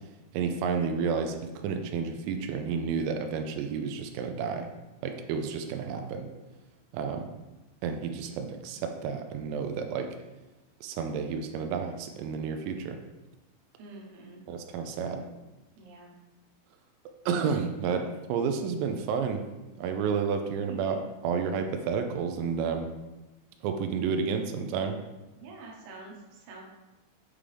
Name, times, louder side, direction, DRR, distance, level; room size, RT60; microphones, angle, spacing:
voice 1, 0.3-4.7 5.0-6.3 6.9-7.3 7.8-10.1 10.8-13.0 14.5-15.2 17.3-19.4 19.8-22.9 23.6-25.0, right 6 dB, 85° right, 5 dB, 3.2 m, -31 dB
voice 2, 13.8-14.4 15.8-16.1 20.7-21.0 25.4-26.6, right 4 dB, 70° right, -2 dB, 2.7 m, -46 dB
8.3 x 3.7 x 3.3 m, 1.1 s
omnidirectional pair, 5.9 m